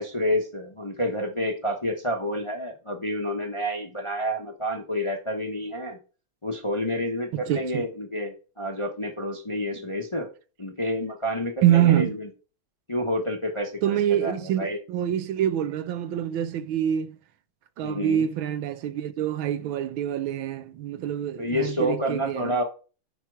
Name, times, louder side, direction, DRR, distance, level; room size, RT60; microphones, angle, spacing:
voice 1, 0.0-6.0 6.4-10.3 10.6-12.3 12.9-14.8 17.8-18.3 21.4-22.6, equal, 20° left, 0.9 m, -29 dB
voice 2, 7.3-7.8 11.6-12.1 13.8-17.2 17.8-22.5, right 11 dB, 75° right, 1.4 m, -25 dB
10.5 x 4.4 x 4.8 m
omnidirectional pair, 2.3 m